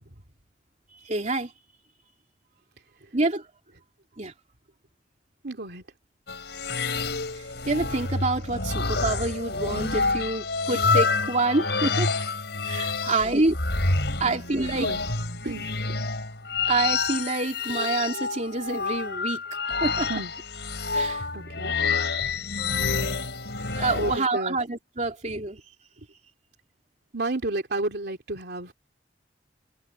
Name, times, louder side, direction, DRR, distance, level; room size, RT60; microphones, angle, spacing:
voice 1, 0.9-1.5 3.1-3.4 4.2-4.3 7.7-12.1 12.7-13.6 14.2-14.9 16.7-19.4 19.8-20.1 20.9-21.3 23.7-25.6, right 2 dB, 40° right, 2.9 m, -27 dB
voice 2, 5.4-5.8 13.1-13.4 14.2-14.4 14.7-15.0 15.4-16.0 20.1-20.3 21.3-21.8 24.0-24.6 27.1-28.7, right 2 dB, 65° right, 2.9 m, -32 dB
sound 1, 6.3-24.2, left 4 dB, 70° left, 6.7 m, -28 dB
head